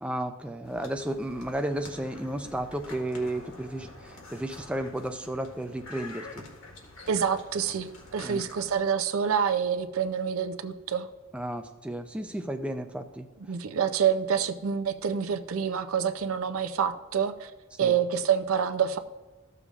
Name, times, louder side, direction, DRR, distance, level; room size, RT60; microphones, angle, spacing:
voice 1, 0.0-6.4 8.2-8.4 11.3-13.3 17.8-17.9, right 1 dB, 5° right, 6 dB, 0.4 m, -33 dB
sound 1, 0.6-8.8, left 2 dB, 85° left, 1.8 m, -47 dB
voice 2, 7.1-11.1 13.5-17.5 17.8-19.0, right 7 dB, 90° right, 9 dB, 0.5 m, -27 dB
14.0 x 6.7 x 2.4 m, 1.2 s
head